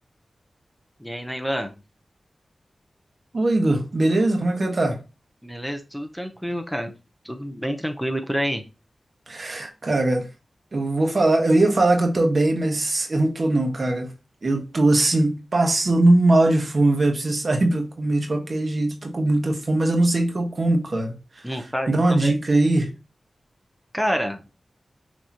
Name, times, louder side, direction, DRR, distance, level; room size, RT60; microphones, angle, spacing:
voice 1, 1.0-1.7 5.4-6.9 7.2-8.6 21.4-22.3 23.9-24.4, equal, ahead, 0.7 m, -28 dB
voice 2, 3.3-5.0 9.3-10.2 10.7-14.1 14.4-21.1 21.9-22.9, right 2 dB, 55° right, 1.2 m, -20 dB
6.1 x 3.0 x 2.8 m
cardioid pair, 60°, 0 cm